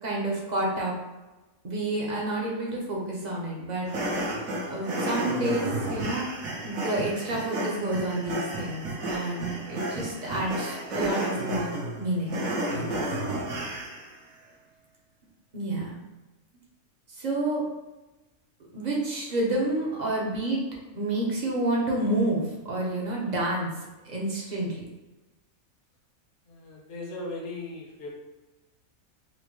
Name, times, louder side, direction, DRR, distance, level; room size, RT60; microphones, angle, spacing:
voice 1, 0.0-0.9 1.6-3.9 4.7-6.3 6.6-12.4 12.7-13.0 15.5-15.9 17.1-17.6 18.7-20.6 20.9-23.7 24.0-24.8, right 1 dB, 40° right, -3 dB, 0.7 m, -29 dB
sound 1, 3.9-14.1, right 1 dB, 70° right, 1.3 m, -32 dB
voice 2, 13.5-13.8 14.4-14.6 26.5-28.1, left 2 dB, 45° left, -2 dB, 0.8 m, -39 dB
4.2 x 2.1 x 3.0 m, 1.1 s
omnidirectional pair, 1.5 m